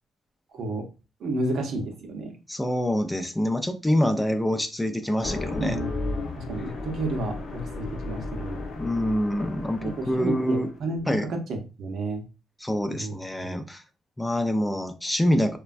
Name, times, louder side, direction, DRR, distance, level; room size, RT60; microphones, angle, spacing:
voice 1, 0.5-0.8 1.2-2.4 5.6-8.6 9.8-12.2 12.9-13.1 13.4-13.6, right 2 dB, 65° right, 3 dB, 0.7 m, -31 dB
voice 2, 2.5-5.8 8.8-10.7 11.1-11.3 12.6-13.8 14.2-15.6, left 1 dB, 10° left, 8 dB, 0.4 m, -26 dB
sound 1, 5.1-10.8, left 3 dB, 60° left, 0.7 m, -34 dB
3.1 x 2.2 x 2.4 m, 0.31 s
cardioid pair, 90°, 0 cm